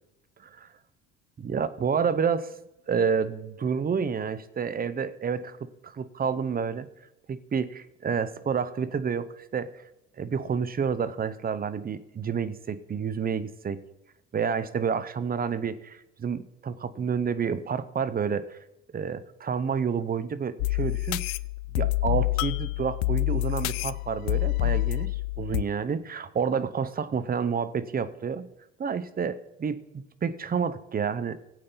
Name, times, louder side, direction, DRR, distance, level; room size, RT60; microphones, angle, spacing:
voice 1, 1.4-2.5 2.9-6.9 7.3-9.7 10.2-13.8 14.3-18.6 18.9-21.2 21.8-28.5 28.8-29.8 30.2-31.4, right 6 dB, 30° right, 14 dB, 0.9 m, -29 dB
sound 1, 20.6-25.6, left 20 dB, 75° left, 0.5 m, -27 dB
16.5 x 8.5 x 4.0 m, 0.92 s
hypercardioid pair, 75°, 30 cm